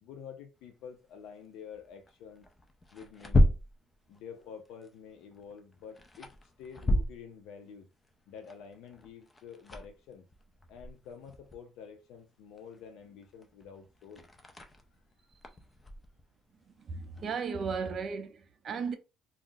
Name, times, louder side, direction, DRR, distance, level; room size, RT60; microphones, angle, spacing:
voice 1, 0.0-2.5 2.9-3.6 4.1-7.9 8.3-10.2 10.7-14.2, left 7 dB, 80° left, 0.4 m, -48 dB
sound 1, 0.6-17.8, left 1 dB, 20° left, 0.5 m, -35 dB
voice 2, 16.8-18.9, right 5 dB, 40° right, 0.5 m, -35 dB
2.4 x 2.0 x 3.7 m
cardioid pair, 135°, 0 cm